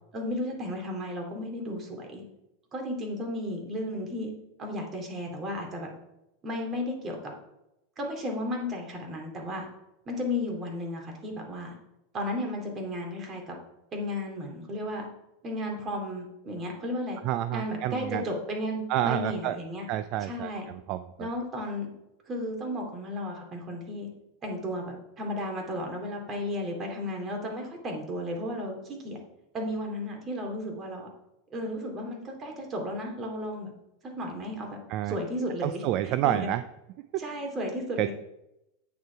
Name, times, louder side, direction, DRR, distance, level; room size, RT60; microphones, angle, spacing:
voice 1, 0.1-2.2 2.7-4.3 4.6-5.9 6.4-7.3 8.0-9.6 10.1-11.7 12.1-13.6 13.9-15.0 15.4-17.2 17.5-19.9 20.2-20.7 21.2-21.9 22.3-24.1 24.4-29.2 29.5-31.1 31.5-33.7 34.1-34.7 35.1-36.5 37.2-38.1, left 1 dB, 30° right, 2 dB, 2.8 m, -34 dB
voice 2, 17.2-18.2 18.9-19.6 19.9-21.3 34.9-35.2 35.6-36.6 37.1-37.2 38.0-38.1, right 13 dB, 50° right, 12 dB, 0.4 m, -29 dB
8.6 x 6.5 x 4.6 m, 0.88 s
hypercardioid pair, 115°, 0 cm